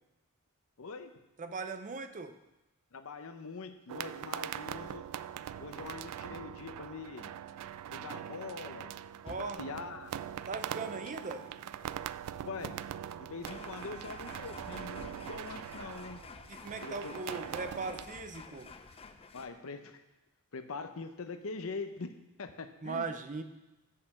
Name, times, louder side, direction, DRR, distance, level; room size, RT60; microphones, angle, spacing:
voice 1, 0.8-1.2 2.9-5.0 5.6-7.3 7.9-8.9 9.4-10.1 12.4-12.8 13.2-16.2 16.8-17.6 19.3-20.0 20.5-22.1 22.4-23.1, left 4 dB, 70° left, 8 dB, 0.7 m, -43 dB
voice 2, 1.4-2.3 9.2-9.6 10.5-11.5 16.5-18.7 22.8-23.4, right 4 dB, 35° right, 8 dB, 0.6 m, -39 dB
sound 1, 3.9-18.1, right 10 dB, 90° right, 0.3 m, -42 dB
sound 2, 4.5-19.5, left 4 dB, 25° left, 0.4 m, -53 dB
7.6 x 6.6 x 5.9 m, 0.97 s
head